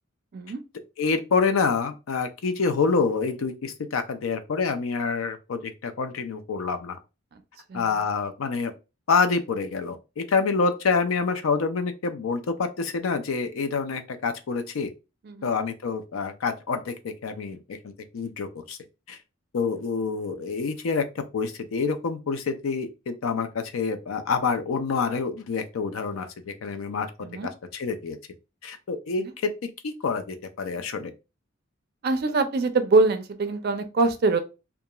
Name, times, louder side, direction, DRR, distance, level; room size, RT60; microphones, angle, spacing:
voice 1, 1.0-7.0 7.7-8.7 9.1-14.9 15.4-18.8 19.1-19.2 19.5-21.0 21.3-27.1 27.4-28.2 28.6-31.1, left 4 dB, 90° left, 0.4 m, -27 dB
voice 2, 32.0-34.4, right 3 dB, 50° right, 0.4 m, -23 dB
2.8 x 2.4 x 2.2 m
head